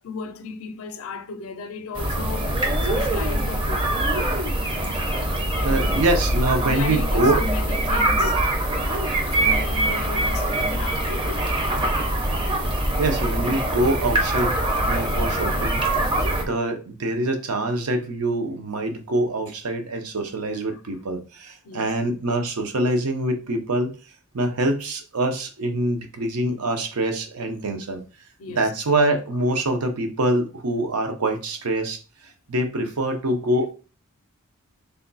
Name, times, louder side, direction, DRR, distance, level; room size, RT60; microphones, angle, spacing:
voice 1, 0.0-4.1 5.6-6.0 6.5-8.4 9.3-11.8 13.3-13.9 20.7-20.8 21.6-21.9 28.4-28.7, left 4 dB, 65° left, 0.5 m, -36 dB
sound 1, 1.9-16.4, right 1 dB, 20° right, 0.6 m, -23 dB
voice 2, 5.6-7.4 13.0-15.8 16.3-23.9 24.3-28.0 28.5-32.0 32.5-33.7, right 1 dB, 75° right, 0.7 m, -24 dB
3.4 x 2.2 x 3.9 m
head